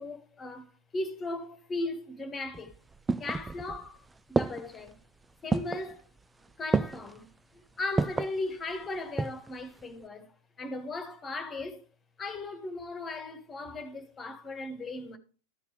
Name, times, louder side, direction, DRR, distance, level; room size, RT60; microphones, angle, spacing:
voice 1, 0.0-2.7 3.2-4.0 4.3-5.0 5.4-6.0 6.6-11.8 12.2-15.2, left 2 dB, 20° left, 1.8 m, -37 dB
sound 1, 2.5-3.9 4.4-4.9 5.5-5.9 6.7-7.2 8.0-8.4 8.9-9.5 9.8-9.9, right 3 dB, 10° right, 0.4 m, -29 dB
13.5 x 4.6 x 5.1 m
figure-of-eight pair, 90°, 0 cm